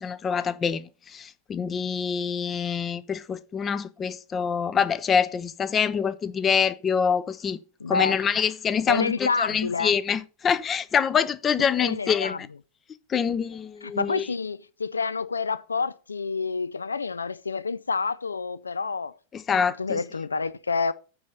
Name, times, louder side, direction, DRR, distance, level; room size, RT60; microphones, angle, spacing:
voice 1, 0.0-7.6 7.9-12.4 13.1-14.3 19.3-20.0, left 7 dB, 25° left, 0.6 m, -25 dB
voice 2, 7.8-8.3 8.9-10.0 11.8-12.4 13.8-19.2 19.5-20.9, left 4 dB, 75° left, 0.3 m, -28 dB
9.5 x 4.2 x 6.4 m
figure-of-eight pair, 90°, 0 cm